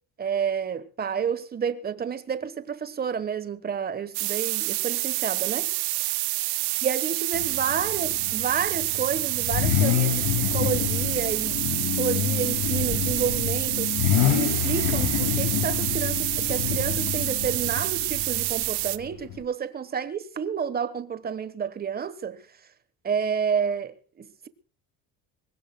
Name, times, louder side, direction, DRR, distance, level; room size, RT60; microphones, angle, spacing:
voice 1, 0.2-5.7 6.8-11.7 12.0-14.0 14.3-22.4 23.0-24.5, right 7 dB, 25° right, 1.3 m, -30 dB
sound 1, 4.1-19.0, right 21 dB, 75° right, 1.1 m, -28 dB
Car / Idling / Accelerating revving vroom, 7.3-19.4, left 12 dB, 65° left, 2.6 m, -28 dB
25.5 x 16.5 x 2.3 m
cardioid pair, 155°, 40 cm